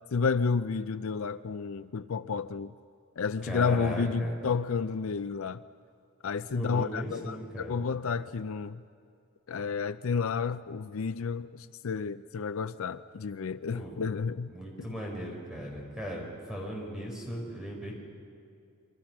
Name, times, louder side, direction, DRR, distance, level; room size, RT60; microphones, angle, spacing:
voice 1, 0.1-2.7 3.2-5.6 6.2-8.8 9.5-14.5, left 5 dB, 70° left, 0.5 m, -31 dB
voice 2, 3.4-4.4 6.5-7.8 13.7-14.0 14.5-18.0, equal, 5° right, 4.8 m, -37 dB
26.5 x 24.5 x 6.0 m
head